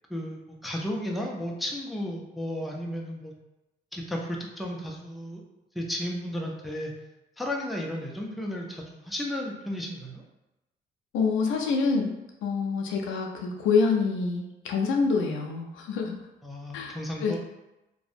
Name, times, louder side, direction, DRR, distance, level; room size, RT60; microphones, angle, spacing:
voice 1, 0.1-3.3 3.9-5.4 5.7-6.9 7.4-10.2 16.4-17.4, left 1 dB, ahead, -1 dB, 0.4 m, -33 dB
voice 2, 11.1-12.1 12.4-16.2 16.7-17.4, left 4 dB, 85° left, 2 dB, 0.4 m, -26 dB
2.6 x 2.1 x 2.5 m, 0.97 s
cardioid pair, 90°, 20 cm